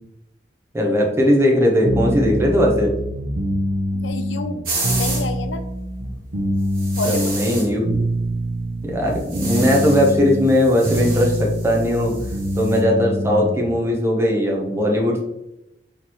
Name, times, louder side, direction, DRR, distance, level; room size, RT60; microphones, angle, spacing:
voice 1, 0.7-2.9 7.0-8.0 8.8-12.1 12.5-15.2, equal, 15° right, -1 dB, 0.8 m, -18 dB
sound 1, 1.8-13.7, equal, 70° right, 0.7 m, -25 dB
voice 2, 3.9-4.6 4.9-5.6 7.0-7.6 9.5-9.8, left 2 dB, 90° left, 9 dB, 0.5 m, -29 dB
sound 2, 4.6-5.3 6.7-7.7 9.1-10.2 10.5-12.8, right 3 dB, 50° right, 1.3 m, -30 dB
4.3 x 3.9 x 3.0 m, 0.89 s
head